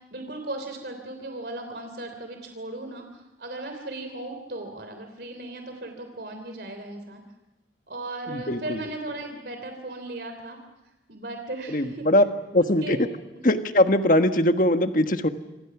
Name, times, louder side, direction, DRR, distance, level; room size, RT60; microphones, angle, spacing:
voice 1, 0.1-7.2 7.9-10.6 11.1-12.0 12.8-13.0 13.3-13.6, right 2 dB, 60° right, 5 dB, 3.2 m, -37 dB
voice 2, 8.3-8.8 11.7-12.2 12.5-13.1 13.4-15.3, left 1 dB, 45° left, 8 dB, 1.4 m, -21 dB
27.0 x 26.5 x 6.1 m, 1.1 s
head